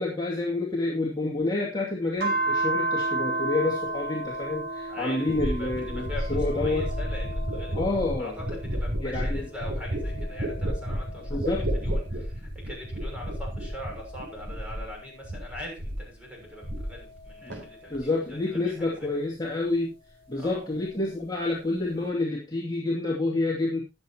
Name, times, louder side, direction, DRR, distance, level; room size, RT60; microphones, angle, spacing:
voice 1, 0.0-6.8 7.7-8.3 9.0-9.5 11.3-11.6 17.4-17.5 17.9-19.9 20.3-23.8, left 2 dB, 20° left, -4 dB, 2.6 m, -28 dB
sound 1, 2.2-8.9 9.4-12.3 12.9-15.6 16.4-18.8 20.2-21.3, right 2 dB, 50° right, 4.3 m, -35 dB
sound 2, 4.5-4.6 5.3-15.0 15.2-16.1 16.4-17.2 17.5-18.0, equal, 70° right, 4.2 m, -32 dB
voice 2, 4.9-7.8 8.2-19.1 20.4-20.7, left 1 dB, 5° right, -1 dB, 6.5 m, -42 dB
21.0 x 7.4 x 2.9 m, 0.26 s
head